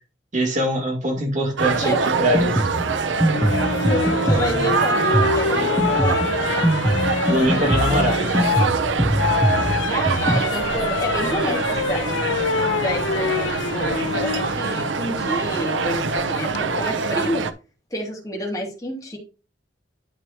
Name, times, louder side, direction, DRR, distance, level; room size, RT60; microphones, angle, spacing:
voice 1, 0.3-2.6 7.3-8.3, right 1 dB, 40° right, 2.3 m, -22 dB
sound 1, 1.6-17.5, right 4 dB, 80° right, 0.8 m, -24 dB
Drum kit, 2.1-10.4, right 1 dB, 15° right, 0.7 m, -23 dB
sound 2, 3.3-14.5 16.2-16.6, left 6 dB, 75° left, 0.6 m, -26 dB
voice 2, 3.8-6.3 9.9-12.3 12.8-17.4 17.9-19.2, equal, 20° left, 2.8 m, -29 dB
11.5 x 4.8 x 3.0 m
head